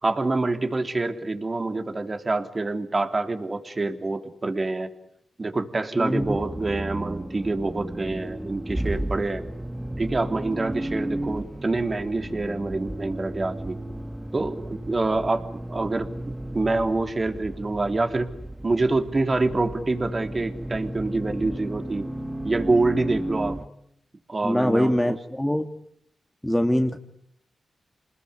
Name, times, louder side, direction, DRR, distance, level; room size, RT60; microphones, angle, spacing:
voice 1, 0.0-4.9 5.4-9.4 10.0-13.8 14.3-15.4 15.7-18.3 18.6-22.1 22.4-23.6 24.3-25.2, right 3 dB, 40° right, 6 dB, 3.4 m, -26 dB
voice 2, 6.0-6.4 24.4-25.7 26.4-27.0, left 1 dB, 10° left, 5 dB, 2.1 m, -23 dB
Accelerating revving vroom, 6.2-23.7, right 1 dB, 15° right, 1.8 m, -34 dB
28.5 x 20.5 x 9.8 m, 0.74 s
supercardioid pair, 40°, 0 cm